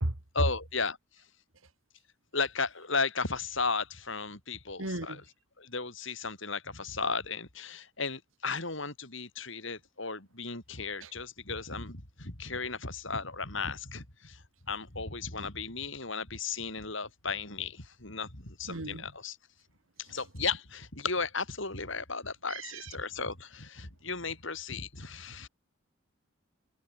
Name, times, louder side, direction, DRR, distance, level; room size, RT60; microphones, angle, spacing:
voice 1, 0.3-1.0 2.3-5.2 5.6-19.4 20.0-25.5, left 4 dB, 65° left, 5.3 m, -35 dB
voice 2, 4.8-5.2 11.0-11.1 18.7-19.0 22.5-22.9, right 1 dB, 75° right, 2.4 m, -35 dB
head